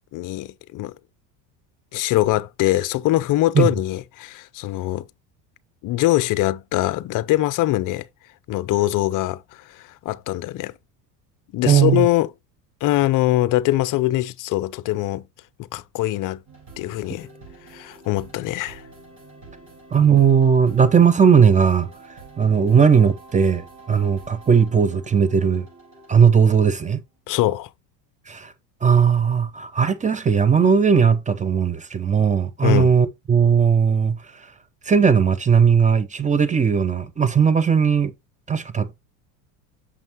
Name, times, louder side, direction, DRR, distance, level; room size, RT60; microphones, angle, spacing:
voice 1, 0.1-0.9 1.9-5.0 5.8-8.1 8.5-10.7 11.5-12.3 12.8-15.2 15.6-16.4 16.8-17.3 17.7-18.8 27.3-27.7 32.6-32.9, left 16 dB, 40° left, 0.6 m, -22 dB
voice 2, 11.6-12.1 19.9-21.9 22.4-25.6 26.1-27.0 28.3-28.5 28.8-34.2 34.9-38.1 38.5-39.0, right 6 dB, 15° right, 0.7 m, -17 dB
sound 1, 16.5-26.9, right 3 dB, 35° right, 4.2 m, -46 dB
6.5 x 5.3 x 2.9 m
supercardioid pair, 100°, 48 cm